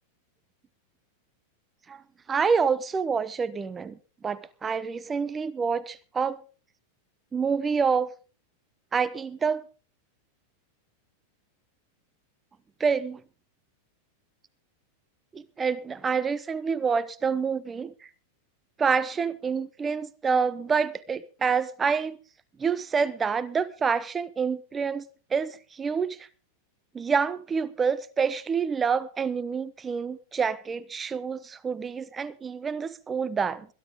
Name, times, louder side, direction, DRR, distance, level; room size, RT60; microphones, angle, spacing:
voice 1, 2.3-4.0 4.2-6.4 7.3-8.1 8.9-9.7 12.8-13.2 15.3-17.9 18.8-22.2 22.6-25.0 25.3-26.3 26.9-33.7, right 5 dB, 20° right, 0.8 m, -27 dB
21.5 x 12.0 x 3.6 m
figure-of-eight pair, 90°, 0 cm